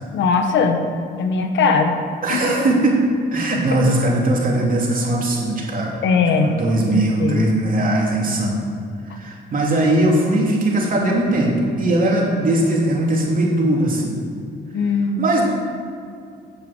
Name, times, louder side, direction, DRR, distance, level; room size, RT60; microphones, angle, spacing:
voice 1, 0.1-0.8 1.1-2.0 2.3-2.7 6.0-6.6 6.9-7.5 14.7-15.3, left 4 dB, 75° left, 6 dB, 1.2 m, -19 dB
voice 2, 2.2-3.0 3.3-5.9 6.4-8.6 9.0-14.1 15.2-15.4, right 1 dB, 45° right, -2 dB, 3.1 m, -19 dB
8.7 x 7.2 x 8.0 m, 2.3 s
cardioid pair, 80°, 19 cm